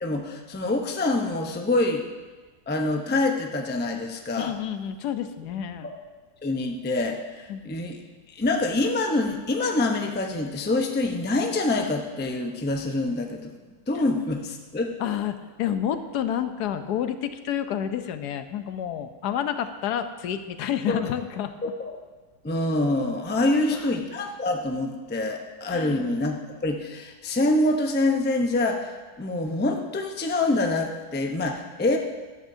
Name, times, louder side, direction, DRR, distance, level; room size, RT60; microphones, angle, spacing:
voice 1, 0.0-2.0 2.7-4.5 5.8-6.0 6.4-8.0 8.3-13.5 13.9-14.9 20.9-21.0 21.6-22.0 22.4-32.0, left 2 dB, 15° left, 3 dB, 0.4 m, -26 dB
voice 2, 4.4-5.9 7.5-7.7 13.9-14.0 15.0-21.5 23.5-23.9 25.7-26.0, left 9 dB, 80° left, 9 dB, 1.2 m, -29 dB
14.0 x 11.5 x 2.7 m, 1.3 s
omnidirectional pair, 1.7 m